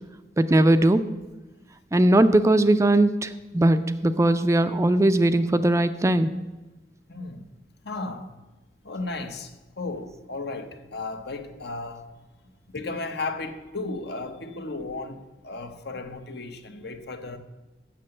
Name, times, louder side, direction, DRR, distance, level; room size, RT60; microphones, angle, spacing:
voice 1, 0.4-1.0 1.9-6.3, right 1 dB, 15° right, 0.4 m, -19 dB
voice 2, 7.1-7.4 7.8-8.4 8.8-12.2 12.7-17.4, left 3 dB, 65° left, 0.9 m, -35 dB
7.6 x 6.7 x 7.7 m
head